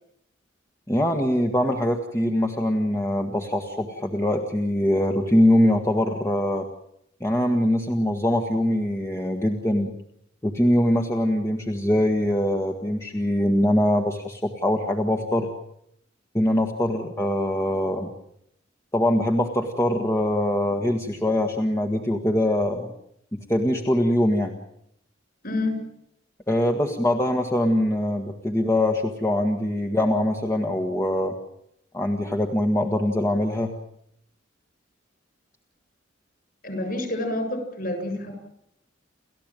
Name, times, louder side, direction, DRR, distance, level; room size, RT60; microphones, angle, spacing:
voice 1, 0.9-6.7 7.2-9.9 10.4-15.5 16.3-18.1 18.9-22.9 23.3-24.6 26.5-31.3 31.9-33.7, left 1 dB, 15° left, 3 dB, 1.6 m, -23 dB
voice 2, 25.4-25.8 36.6-38.3, left 1 dB, 45° left, 6 dB, 7.7 m, -28 dB
30.0 x 14.0 x 9.1 m, 0.76 s
head